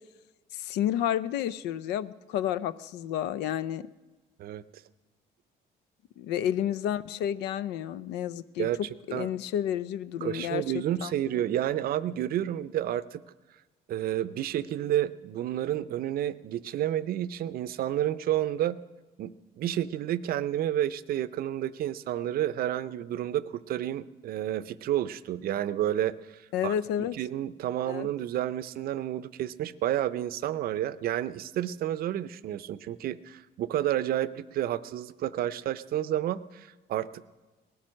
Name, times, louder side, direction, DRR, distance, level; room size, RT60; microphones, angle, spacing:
voice 1, 0.5-3.9 6.2-8.7 9.1-10.6 11.0-11.4 26.5-27.1 27.9-28.1, left 10 dB, 90° left, 16 dB, 0.5 m, -31 dB
voice 2, 10.2-13.2 13.9-18.8 19.2-26.1 26.6-26.7 27.1-37.3, right 12 dB, 60° right, 16 dB, 0.6 m, -30 dB
19.0 x 12.0 x 6.3 m, 1.2 s
cardioid pair, 110°, 17 cm